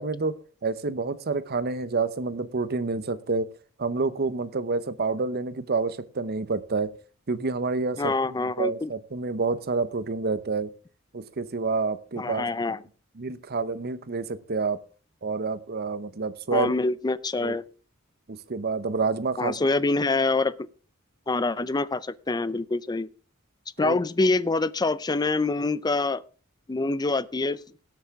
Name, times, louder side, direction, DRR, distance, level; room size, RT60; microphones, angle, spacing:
voice 1, 0.0-3.5 3.8-6.9 7.3-10.7 11.1-12.5 13.2-14.8 15.2-16.7 17.4-17.6 18.3-19.6 23.8-24.0, right 4 dB, 50° right, 0.8 m, -28 dB
voice 2, 8.0-8.9 12.2-12.8 16.5-17.6 19.4-20.5 21.3-23.1 23.8-26.2 26.7-27.6, left 3 dB, 20° left, 0.5 m, -25 dB
17.5 x 8.2 x 3.6 m
head